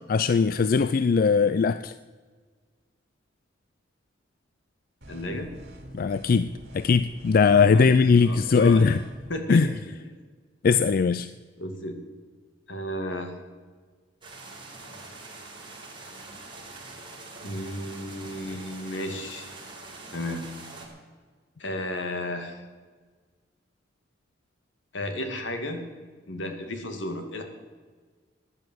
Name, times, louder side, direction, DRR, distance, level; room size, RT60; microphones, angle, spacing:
voice 1, 0.0-1.9 5.9-6.5 6.7-9.0 9.5-9.7 10.6-11.3, left 5 dB, 50° left, 14 dB, 0.4 m, -20 dB
sound 1, 5.0-9.4, right 1 dB, 60° right, 2.7 m, -45 dB
voice 2, 5.1-5.5 7.7-7.9 8.2-8.8 9.3-10.2 11.6-12.0 12.7-13.3 17.4-19.5 20.1-20.4 21.6-22.6 24.9-25.8 26.3-27.4, left 1 dB, 75° left, 6 dB, 2.1 m, -33 dB
sound 2, 14.2-20.9, right 3 dB, 25° right, 3.9 m, -44 dB
14.5 x 10.0 x 7.7 m, 1.5 s
head